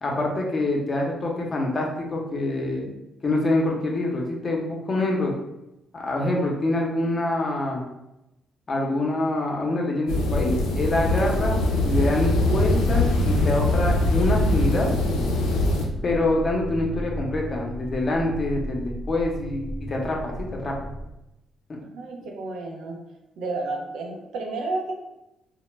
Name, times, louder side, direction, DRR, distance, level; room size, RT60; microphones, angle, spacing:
voice 1, 0.0-2.9 3.2-5.4 5.9-7.8 8.7-14.9 16.0-20.9, left 2 dB, 45° left, -1 dB, 0.6 m, -25 dB
sound 1, 10.1-15.9, left 1 dB, 85° left, 0.4 m, -22 dB
sound 2, 10.3-21.1, equal, 20° right, 0.6 m, -35 dB
voice 2, 21.9-23.0 23.4-24.9, right 3 dB, 75° right, 1 dB, 0.4 m, -31 dB
2.1 x 2.0 x 3.1 m, 0.90 s
supercardioid pair, 55°, 0 cm